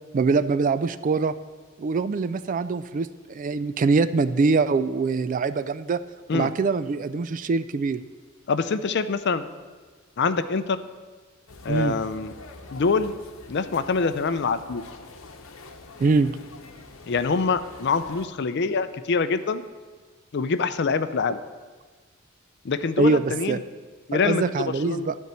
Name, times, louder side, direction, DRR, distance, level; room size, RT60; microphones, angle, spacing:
voice 1, 0.1-1.3 1.8-6.0 6.3-8.0 11.7-12.0 16.0-16.4 23.0-23.6 24.1-25.2, right 4 dB, 40° right, 14 dB, 0.3 m, -23 dB
voice 2, 8.5-9.4 10.2-10.8 11.6-12.3 12.7-13.1 13.5-14.8 17.1-19.6 20.3-21.4 22.6-23.6 24.1-25.1, left 4 dB, 55° left, 11 dB, 0.5 m, -25 dB
sound 1, 11.5-18.3, left 3 dB, 80° left, 1.0 m, -45 dB
12.0 x 4.5 x 8.2 m, 1.5 s
head